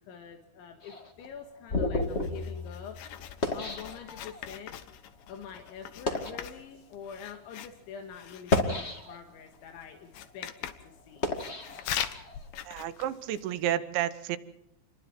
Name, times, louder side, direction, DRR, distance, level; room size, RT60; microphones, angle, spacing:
voice 1, 0.0-3.0 3.5-4.8 5.3-11.3, left 7 dB, 85° left, 4 dB, 4.1 m, -45 dB
sound 1, 0.8-4.5 5.2-5.4 5.9-6.4 7.2-7.4 8.3-9.4 9.9-12.4, left 2 dB, 35° left, 1.0 m, -32 dB
Writing, 2.0-13.6, left 10 dB, 65° left, 2.4 m, -42 dB
voice 2, 12.7-14.4, right 11 dB, 80° right, 11 dB, 3.4 m, -31 dB
28.5 x 22.0 x 4.4 m, 0.80 s
omnidirectional pair, 5.2 m